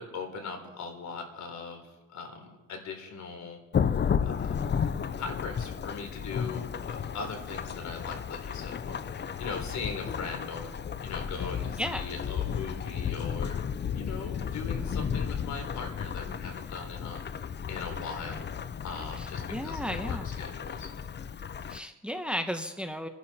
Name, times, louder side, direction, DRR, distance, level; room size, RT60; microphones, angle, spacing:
voice 1, 0.0-3.6 4.2-4.5 5.2-10.7 11.0-13.6 13.9-18.4 18.8-20.9, left 4 dB, 65° left, 4 dB, 3.8 m, -40 dB
Thunderstorm / Rain, 3.7-21.8, left 7 dB, 35° left, 0.7 m, -33 dB
voice 2, 19.2-20.3 21.7-23.1, equal, 5° right, 6 dB, 1.2 m, -34 dB
29.0 x 11.5 x 4.3 m, 1.1 s
cardioid pair, 90°, 30 cm